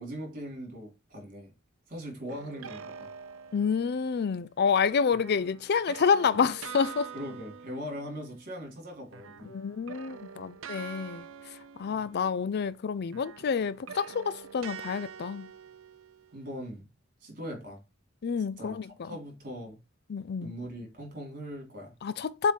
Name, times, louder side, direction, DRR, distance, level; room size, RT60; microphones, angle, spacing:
voice 1, 0.0-1.5 1.9-3.1 7.1-9.6 11.9-12.0 16.3-16.8 17.2-17.8 18.6-18.7 19.0-19.8 20.4-21.9, equal, 45° right, 3.4 m, -40 dB
sound 1, 2.3-4.2 5.1-8.8 9.1-12.7 13.1-16.5, right 7 dB, 70° right, 0.7 m, -46 dB
voice 2, 3.5-7.1 9.5-11.3 11.8-15.5 18.2-19.1 20.1-20.5 22.0-22.5, left 6 dB, 55° left, 0.4 m, -28 dB
7.3 x 3.6 x 4.6 m
head